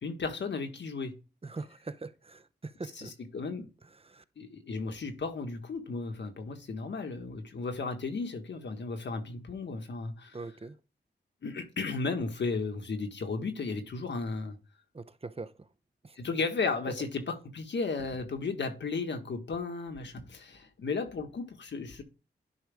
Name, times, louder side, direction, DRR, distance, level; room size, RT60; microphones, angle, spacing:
voice 1, 0.0-1.1 3.0-3.1 3.3-3.7 4.4-10.4 11.4-14.6 16.2-22.0, left 4 dB, 80° left, 1.6 m, -34 dB
voice 2, 1.4-3.1 3.8-4.2 10.3-10.8 14.9-15.7 16.0-16.2 16.9-17.0, right 3 dB, 30° right, 0.8 m, -42 dB
11.0 x 5.0 x 3.6 m
cardioid pair, 60°, 18 cm